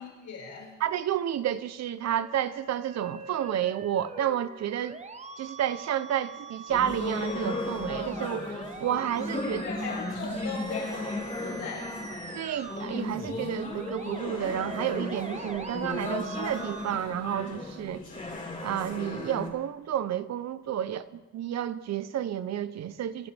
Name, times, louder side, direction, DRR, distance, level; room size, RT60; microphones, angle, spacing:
voice 1, 0.0-0.7 9.4-12.0, left 4 dB, 75° left, 5.8 m, -38 dB
voice 2, 0.8-5.0 5.4-9.6 12.3-18.0 18.6-23.3, right 10 dB, 60° right, 0.7 m, -31 dB
Musical instrument, 2.0-18.0, right 4 dB, 25° right, 1.1 m, -44 dB
sound 1, 6.7-19.5, left 2 dB, 25° left, 3.5 m, -35 dB
27.5 x 11.5 x 3.5 m
cardioid pair, 90°, 30 cm